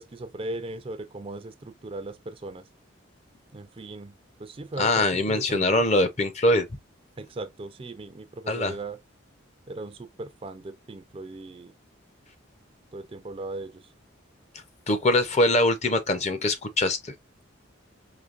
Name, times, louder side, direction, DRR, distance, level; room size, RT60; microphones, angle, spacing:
voice 1, 0.0-2.6 3.5-4.1 4.4-5.8 7.2-9.0 9.7-11.7 12.9-13.8, right 2 dB, 30° right, 0.4 m, -38 dB
voice 2, 4.8-6.7 8.5-8.7 14.9-17.1, left 1 dB, 35° left, 0.6 m, -23 dB
5.0 x 3.1 x 2.4 m
head